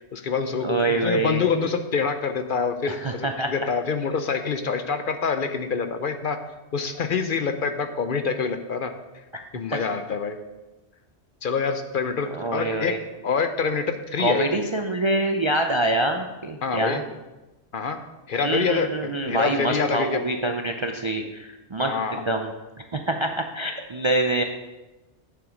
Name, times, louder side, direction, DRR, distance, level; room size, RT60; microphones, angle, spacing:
voice 1, 0.0-6.4 6.7-8.9 9.5-10.4 11.4-13.0 13.2-14.7 16.6-17.0 17.7-18.0 18.3-20.2 21.8-22.2, left 5 dB, 55° left, 8 dB, 0.7 m, -26 dB
voice 2, 0.6-1.4 2.9-3.5 9.3-9.4 9.7-9.9 12.3-13.0 14.2-17.0 18.4-22.5 22.9-24.4, right 2 dB, 40° right, 4 dB, 0.4 m, -25 dB
8.9 x 7.2 x 5.1 m, 1.1 s
omnidirectional pair, 1.2 m